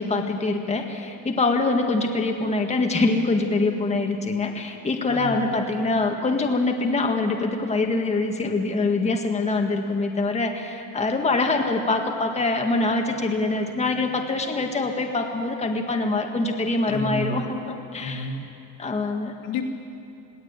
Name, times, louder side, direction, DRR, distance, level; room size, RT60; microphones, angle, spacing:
voice 1, 0.0-18.3 18.8-19.3, left 3 dB, 15° left, 3 dB, 1.8 m, -24 dB
voice 2, 5.1-5.5 16.9-17.3 18.0-18.4 19.4-19.7, left 3 dB, 70° left, 0 dB, 2.9 m, -30 dB
21.5 x 17.0 x 8.9 m, 2.7 s
cardioid pair, 140°, 40 cm